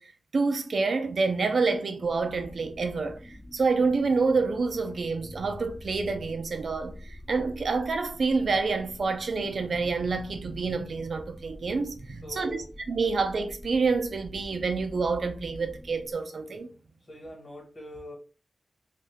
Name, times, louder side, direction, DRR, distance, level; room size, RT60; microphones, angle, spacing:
voice 1, 0.0-12.6 12.9-16.7, right 4 dB, 55° right, 0.5 m, -28 dB
sound 1, 2.0-16.1, left 1 dB, 10° left, 0.4 m, -46 dB
voice 2, 12.2-12.7 17.0-18.1, left 1 dB, 40° left, 1.2 m, -42 dB
2.7 x 2.3 x 3.4 m
wide cardioid pair, 150°, 0 cm